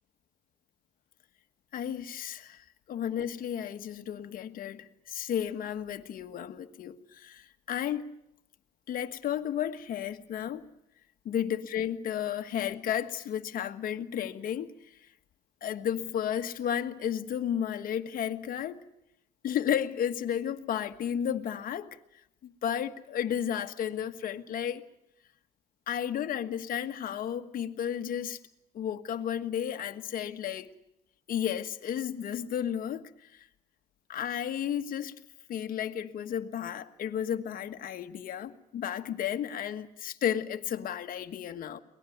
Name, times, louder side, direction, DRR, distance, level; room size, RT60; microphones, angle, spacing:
voice 1, 1.7-8.0 8.9-10.6 11.2-14.7 15.6-18.8 19.4-22.0 22.4-24.8 25.9-28.4 28.7-30.7 31.3-33.5 34.1-35.1 35.5-41.8, left 9 dB, 55° left, 1.5 m, -33 dB
24.0 x 19.5 x 9.3 m
cardioid pair, 110°, 17 cm